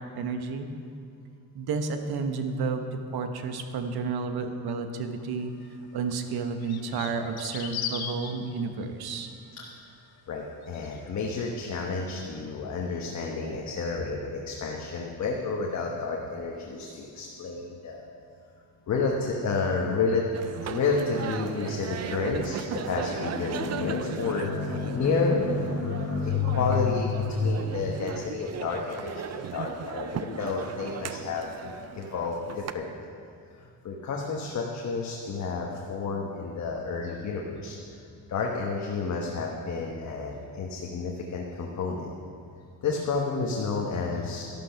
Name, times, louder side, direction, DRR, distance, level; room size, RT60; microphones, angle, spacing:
voice 1, 0.1-0.7 1.5-2.8 3.1-5.5 5.9-9.3, right 4 dB, 85° right, 6 dB, 1.2 m, -31 dB
sound 1, 5.6-5.7 6.6-8.3 10.6-11.0, left 8 dB, 85° left, 1.2 m, -36 dB
voice 2, 10.3-18.1 18.9-20.3 20.6-33.1 33.5-37.8 38.3-42.1 42.8-44.4, left 4 dB, 50° left, -1 dB, 1.3 m, -30 dB
sound 2, 20.3-32.7, right 8 dB, 45° right, 0.5 m, -37 dB
12.5 x 12.0 x 5.8 m, 2.4 s
cardioid pair, 155°, 36 cm